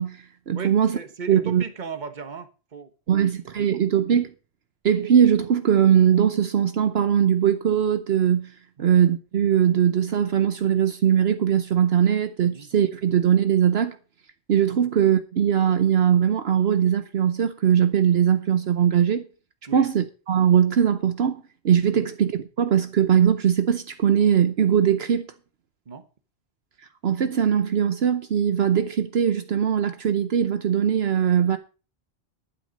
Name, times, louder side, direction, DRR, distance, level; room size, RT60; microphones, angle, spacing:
voice 1, 0.0-1.0 1.3-1.6 3.1-4.3 4.8-8.5 8.8-14.0 14.5-19.2 19.7-25.3 27.0-31.6, right 8 dB, 70° right, 1.0 m, -20 dB
voice 2, 0.5-3.3 3.6-3.8 8.8-8.9 12.5-12.7 14.8-14.9 19.7-19.9 21.9-22.1 25.9-26.0, right 5 dB, 45° right, 1.3 m, -37 dB
11.5 x 9.4 x 5.2 m
omnidirectional pair, 1.1 m